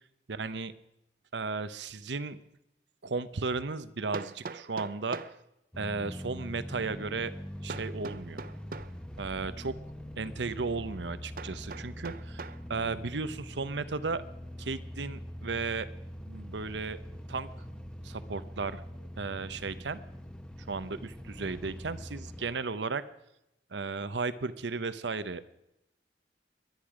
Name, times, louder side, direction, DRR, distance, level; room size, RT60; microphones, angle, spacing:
voice 1, 0.3-0.7 1.3-2.4 3.0-5.2 5.8-7.3 7.6-8.4 9.2-9.8 10.2-14.2 14.6-15.9 16.3-17.0 17.3-17.5 18.0-20.0 20.7-23.1 23.7-25.4, right 4 dB, 85° right, 14 dB, 0.8 m, -35 dB
Hammer, 2.5-2.6 4.1-5.4 7.7-9.0 11.4-12.6, right 4 dB, 50° right, 0.5 m, -42 dB
sound 1, 5.7-22.5, equal, 5° left, 0.8 m, -43 dB
22.5 x 10.5 x 5.0 m, 0.86 s
head